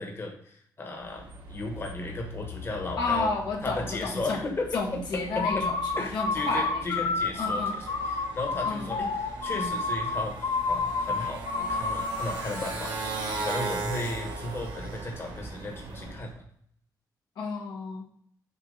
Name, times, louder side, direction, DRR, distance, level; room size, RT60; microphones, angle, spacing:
voice 1, 0.0-3.3 3.6-5.7 6.0-16.3, left 2 dB, 35° left, 1 dB, 1.1 m, -35 dB
Motorcycle, 0.9-16.3, right 2 dB, 85° right, 1.4 m, -39 dB
voice 2, 3.0-4.4 4.7-7.1 7.4-7.7 8.7-8.9 17.4-18.0, left 3 dB, 85° left, -1 dB, 1.3 m, -31 dB
sound 1, 5.3-12.5, left 3 dB, 65° left, 0.7 m, -30 dB
6.7 x 2.9 x 5.1 m, 0.63 s
wide cardioid pair, 130°, 7 cm